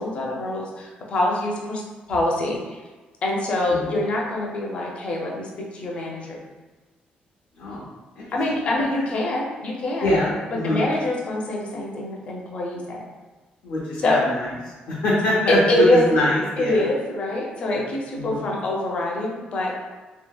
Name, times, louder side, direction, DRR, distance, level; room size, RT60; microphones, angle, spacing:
voice 1, 0.0-1.8 2.1-2.8 3.2-6.4 8.3-10.1 10.6-13.0 14.0-14.2 15.5-16.3 16.6-19.7, left 1 dB, 40° left, -1 dB, 0.5 m, -24 dB
voice 2, 10.0-10.9 13.6-14.5 14.9-16.8 17.7-17.8 18.2-18.4, left 2 dB, 85° left, -7 dB, 0.6 m, -23 dB
2.7 x 2.7 x 2.3 m, 1.3 s
cardioid pair, 175°, 3 cm